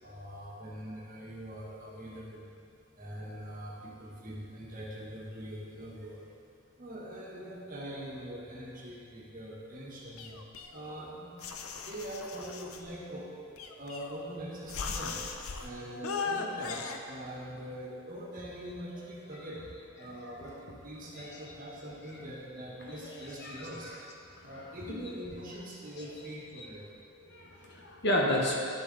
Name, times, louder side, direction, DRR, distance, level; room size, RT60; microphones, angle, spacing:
voice 1, 0.0-2.6 2.9-6.3 6.8-10.4 10.7-11.3 11.7-15.2 15.6-19.6 20.0-20.5 20.8-23.9 24.4-26.9, equal, 40° right, -4 dB, 1.6 m, -43 dB
sound 1, 10.2-11.0 11.4-12.8 13.6-14.3 14.7-15.7 16.0-17.0, left 5 dB, 80° left, 0.6 m, -38 dB
voice 2, 20.0-20.5 21.1-21.5 22.1-22.2 23.0-24.0 24.3-25.0 26.0-26.1 26.6-26.7 27.2-28.5, left 1 dB, 50° left, -1 dB, 1.1 m, -34 dB
10.5 x 7.1 x 4.0 m, 2.4 s
head